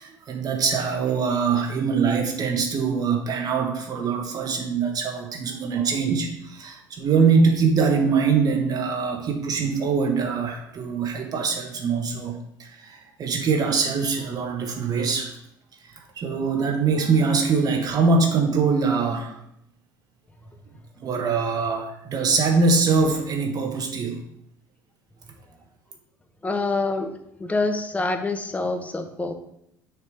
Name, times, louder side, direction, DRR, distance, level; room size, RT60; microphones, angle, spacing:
voice 1, 0.0-15.3 16.2-19.3 21.0-24.2, right 5 dB, 40° right, 3 dB, 1.4 m, -23 dB
voice 2, 26.4-27.1 27.4-29.4, left 3 dB, 15° left, 5 dB, 0.9 m, -26 dB
6.4 x 3.2 x 4.9 m, 0.76 s
hypercardioid pair, 65°, 10 cm